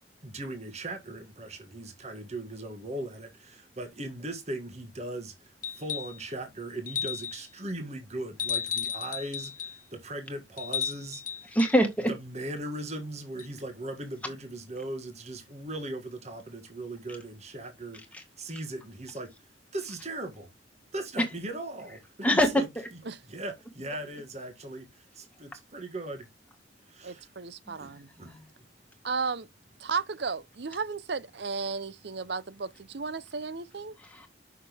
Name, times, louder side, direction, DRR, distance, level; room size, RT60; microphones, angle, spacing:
voice 1, 0.2-5.3 5.8-11.2 12.1-18.0 18.4-19.3 19.7-20.5 20.9-22.7 23.3-24.9 25.2-26.3 26.9-27.2 27.8-27.9 28.2-28.3, right 1 dB, 35° right, 1.6 m, -38 dB
sound 1, 5.6-6.2 6.9-7.5 8.4-9.8 10.6-11.8 13.4-13.5, left 8 dB, 45° left, 0.7 m, -34 dB
voice 2, 11.5-12.1 18.1-18.2 22.2-22.5 22.8-22.9 28.2-28.4 34.0-34.3, equal, 5° left, 1.7 m, -24 dB
voice 3, 27.0-28.1 29.0-29.5 29.8-33.9, right 4 dB, 60° right, 0.6 m, -34 dB
6.7 x 6.1 x 3.5 m
head